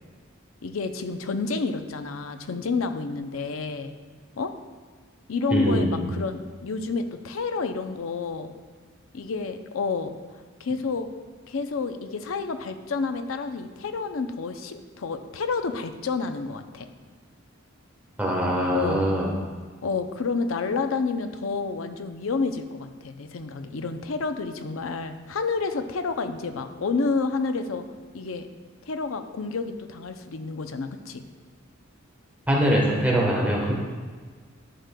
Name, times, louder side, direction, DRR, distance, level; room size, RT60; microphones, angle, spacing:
voice 1, 0.6-3.9 4.4-4.5 5.3-8.5 9.1-10.1 10.6-11.1 11.5-16.9 18.7-19.1 19.8-27.9 28.1-28.5 28.9-31.2, left 4 dB, 75° left, 8 dB, 0.6 m, -29 dB
voice 2, 5.5-6.0 18.2-19.3 32.5-33.7, equal, 10° right, -3 dB, 1.2 m, -22 dB
11.5 x 6.4 x 2.2 m, 1.5 s
head